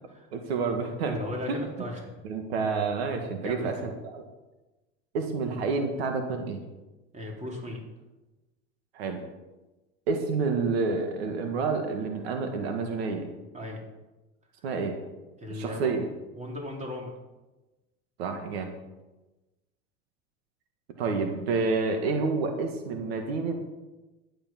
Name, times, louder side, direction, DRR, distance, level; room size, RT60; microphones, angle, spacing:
voice 1, 0.3-1.1 2.2-4.2 5.1-6.6 8.9-9.2 10.1-13.3 14.6-15.0 15.5-16.0 18.2-18.7 21.0-23.5, right 4 dB, 85° right, 5 dB, 1.8 m, -29 dB
voice 2, 1.1-2.2 3.4-3.9 7.1-7.8 13.5-13.8 15.4-15.9 16.4-17.1, left 1 dB, 25° right, 0 dB, 4.0 m, -36 dB
11.5 x 10.0 x 5.9 m, 1.1 s
supercardioid pair, 105°, 31 cm